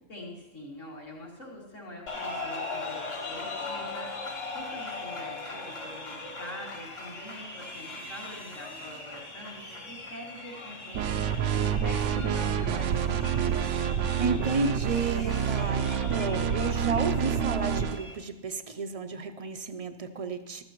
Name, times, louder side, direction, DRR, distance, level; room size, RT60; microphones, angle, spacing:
voice 1, 0.1-13.4, equal, 75° left, -4 dB, 3.3 m, -44 dB
sound 1, 2.1-18.1, left 3 dB, 50° left, 2.0 m, -40 dB
sound 2, 10.9-18.0, right 8 dB, 70° right, 0.9 m, -28 dB
voice 2, 14.2-20.6, right 4 dB, 45° right, 8 dB, 0.5 m, -32 dB
14.0 x 13.5 x 3.0 m, 1.1 s
omnidirectional pair, 1.3 m